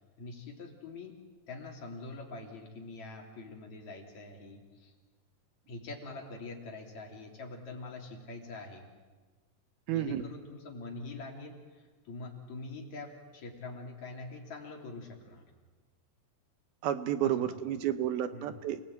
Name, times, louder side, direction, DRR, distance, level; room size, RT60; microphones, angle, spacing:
voice 1, 0.2-1.1 1.5-4.9 5.7-8.9 9.9-15.5 17.2-17.6 18.3-18.6, left 3 dB, 45° left, 1 dB, 4.3 m, -44 dB
voice 2, 9.9-10.2 16.8-18.8, right 11 dB, 75° right, 10 dB, 2.7 m, -31 dB
29.0 x 20.5 x 9.3 m, 1.4 s
omnidirectional pair, 4.7 m